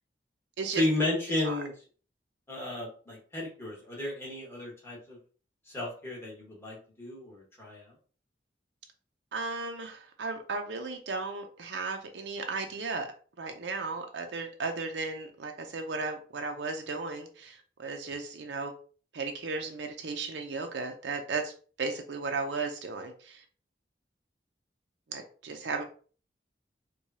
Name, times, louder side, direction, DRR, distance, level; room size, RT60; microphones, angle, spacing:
voice 1, 0.8-1.7 2.5-5.2 5.7-7.9, left 1 dB, 15° left, -4 dB, 1.3 m, -33 dB
voice 2, 9.3-13.1 13.4-18.7 19.1-21.5 21.8-23.4 25.1-25.8, right 4 dB, 75° right, 5 dB, 0.5 m, -35 dB
4.6 x 2.3 x 2.7 m, 0.40 s
head